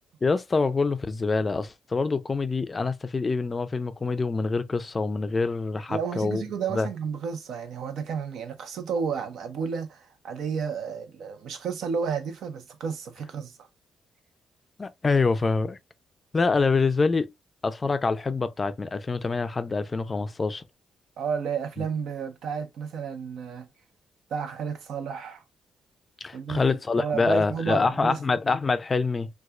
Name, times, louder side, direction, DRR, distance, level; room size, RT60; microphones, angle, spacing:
voice 1, 0.2-6.4 6.7-6.9 14.8-15.8 16.3-17.3 17.6-20.6 21.8-21.9 26.2-29.3, left 4 dB, 30° left, 0.4 m, -25 dB
voice 2, 5.9-13.6 21.2-23.7 24.3-25.4 26.3-26.7 27.0-28.2, right 6 dB, 75° right, 0.8 m, -32 dB
4.2 x 2.3 x 2.3 m
cardioid pair, 105°, 0 cm